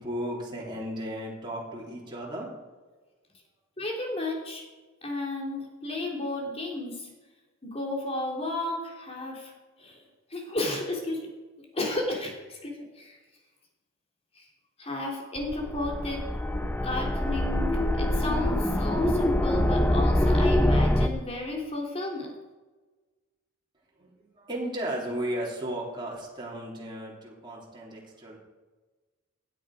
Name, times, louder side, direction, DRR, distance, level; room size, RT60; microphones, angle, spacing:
voice 1, 0.0-2.5 24.0-28.4, right 1 dB, 25° right, -4 dB, 3.5 m, -35 dB
voice 2, 3.8-4.6 5.0-7.1 7.6-9.5 9.8-11.3 11.7-13.2 14.3-14.5 14.8-16.3 16.8-22.3, left 2 dB, 30° left, -1 dB, 3.3 m, -33 dB
sound 1, 15.4-21.1, left 1 dB, 10° left, 0.7 m, -24 dB
16.5 x 10.0 x 5.0 m, 1.3 s
head